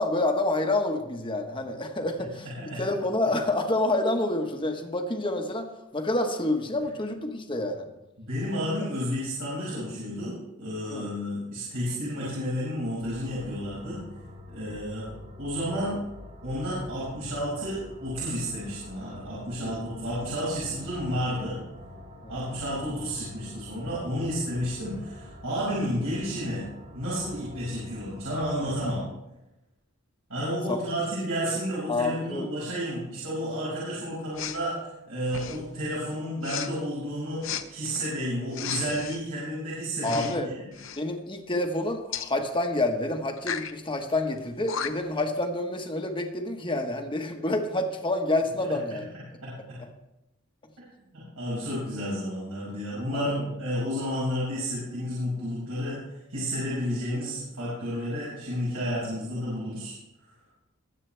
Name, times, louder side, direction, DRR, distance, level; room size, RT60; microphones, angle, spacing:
voice 1, 0.0-2.4 2.8-5.7 5.9-7.9 10.9-11.1 19.6-19.8 22.2-22.3 30.7-30.8 31.9-32.5 40.0-40.5 41.0-49.1 53.1-53.5, left 2 dB, 25° left, 4 dB, 1.2 m, -28 dB
voice 2, 8.2-14.0 14.5-15.1 15.4-16.0 16.4-21.6 22.3-26.6 26.9-29.0 30.3-37.4 37.7-40.8 49.4-49.8 51.1-56.0 56.3-59.9, equal, 80° right, -8 dB, 5.7 m, -31 dB
sound 1, 13.0-29.0, left 1 dB, 45° right, 3.3 m, -46 dB
Respiratory sounds, 34.3-34.6 35.3-35.7 36.4-36.7 37.4-37.6 38.5-39.2 40.0-40.4 40.7-41.0 42.1-42.3 43.4-43.7 44.4-44.5 44.7-45.1, left 8 dB, 60° left, 0.8 m, -34 dB
21.0 x 8.3 x 3.4 m, 0.93 s
head